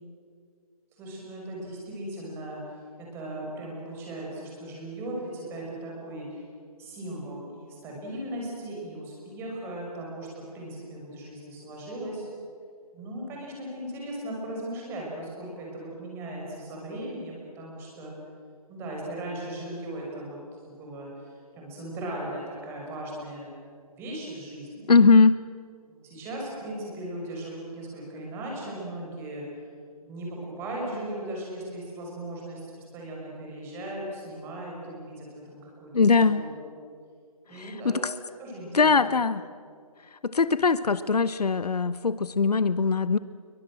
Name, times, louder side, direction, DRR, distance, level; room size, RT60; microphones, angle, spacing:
voice 1, 1.0-2.6 3.0-6.4 6.8-12.2 12.9-18.1 18.7-20.4 20.6-23.5 24.0-24.9 25.9-29.4 30.0-32.6 32.9-36.7 37.5-38.1 38.4-39.2, right 1 dB, 10° right, -2 dB, 6.4 m, -37 dB
voice 2, 24.9-25.4 35.9-36.4 37.6-38.1 38.7-39.4 40.2-43.2, left 4 dB, 85° left, 15 dB, 1.0 m, -21 dB
28.5 x 24.0 x 7.6 m, 2.2 s
hypercardioid pair, 160°, 20 cm